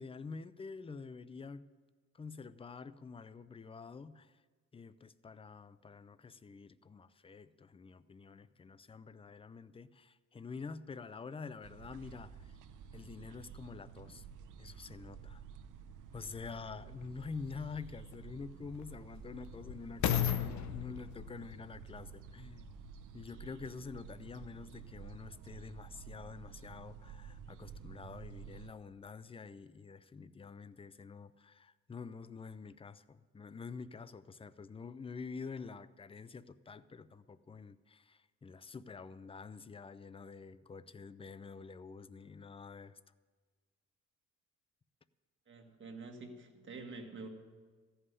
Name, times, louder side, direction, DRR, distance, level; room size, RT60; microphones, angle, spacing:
voice 1, 0.0-1.6 2.1-4.3 4.7-12.5 12.9-14.3 14.6-15.4 16.1-22.8 23.1-43.0, left 5 dB, 20° left, 16 dB, 0.5 m, -47 dB
sound 1, 11.6-28.7, right 7 dB, 85° right, 0.8 m, -51 dB
sound 2, 17.0-17.1 17.8-23.1 23.8-23.9, left 10 dB, 70° left, 0.8 m, -37 dB
voice 2, 45.5-47.3, right 3 dB, 40° right, 3 dB, 1.8 m, -47 dB
14.5 x 5.6 x 9.7 m, 1.5 s
cardioid pair, 90°, 30 cm